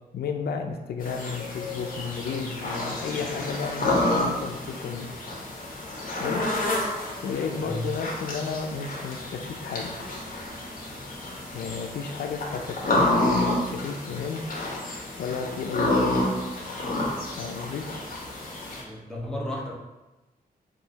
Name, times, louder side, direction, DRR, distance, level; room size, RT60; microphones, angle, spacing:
voice 1, 0.1-5.1 6.2-6.4 7.2-10.0 11.5-14.4 15.2-16.1 17.3-17.8, left 5 dB, 90° left, 4 dB, 0.4 m, -33 dB
sound 1, 1.0-18.8, left 2 dB, 60° left, 0.9 m, -29 dB
voice 2, 7.4-7.9 18.8-19.7, left 1 dB, 5° left, -3 dB, 0.8 m, -34 dB
3.8 x 2.6 x 4.0 m, 1.1 s
wide cardioid pair, 115°, 16 cm